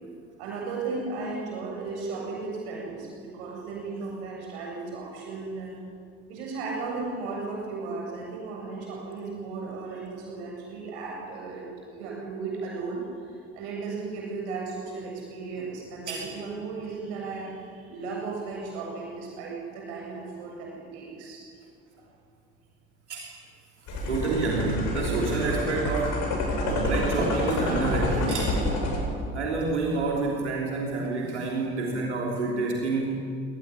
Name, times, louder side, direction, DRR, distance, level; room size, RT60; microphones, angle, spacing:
voice 1, 0.4-5.8 6.3-11.7 11.9-21.4, right 4 dB, 75° right, -2 dB, 7.7 m, -35 dB
sound 1, 23.9-29.0, left 1 dB, 60° left, 7.8 m, -28 dB
voice 2, 24.1-26.3 26.6-28.6 29.3-33.2, right 3 dB, 90° right, -2 dB, 3.3 m, -28 dB
23.5 x 19.0 x 10.0 m, 2.4 s
hypercardioid pair, 55°, 33 cm